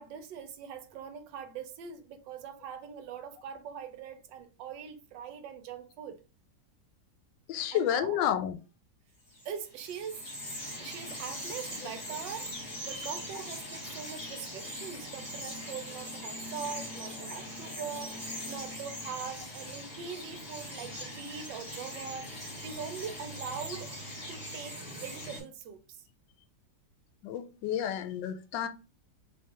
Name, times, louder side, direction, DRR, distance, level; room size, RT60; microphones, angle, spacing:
voice 1, 0.0-6.2 7.7-8.2 9.4-23.9 24.3-26.0, right 7 dB, 85° right, 1.3 m, -42 dB
voice 2, 7.5-8.6 27.2-28.7, left 10 dB, 85° left, 1.2 m, -30 dB
Bird vocalization bird call bird song, 9.3-25.4, equal, 30° left, 2.1 m, -41 dB
3.4 x 3.2 x 2.8 m
omnidirectional pair, 2.0 m